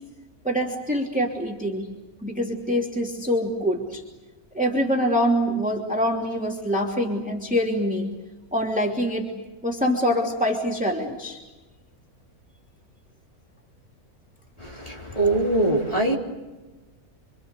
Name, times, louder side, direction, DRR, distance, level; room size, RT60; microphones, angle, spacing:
voice 1, 0.4-1.8 2.2-4.0 4.5-8.1 8.5-9.3 9.6-11.4, equal, 5° right, 0 dB, 3.0 m, -24 dB
voice 2, 14.6-16.2, right 2 dB, 25° left, -2 dB, 4.0 m, -23 dB
27.0 x 26.5 x 6.8 m, 1.2 s
omnidirectional pair, 1.6 m